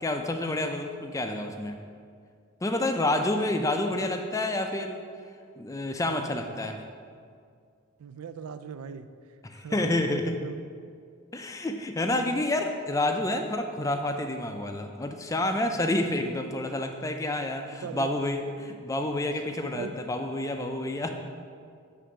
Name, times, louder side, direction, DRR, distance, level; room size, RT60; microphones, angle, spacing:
voice 1, 0.0-1.8 2.6-5.0 5.6-6.8 9.4-10.3 11.3-21.1, left 1 dB, 15° left, 5 dB, 0.4 m, -29 dB
voice 2, 8.0-9.1 9.5-10.6 15.7-15.9 17.8-18.1 19.7-19.9, right 6 dB, 90° right, 11 dB, 0.4 m, -39 dB
7.7 x 3.3 x 6.3 m, 2.2 s
head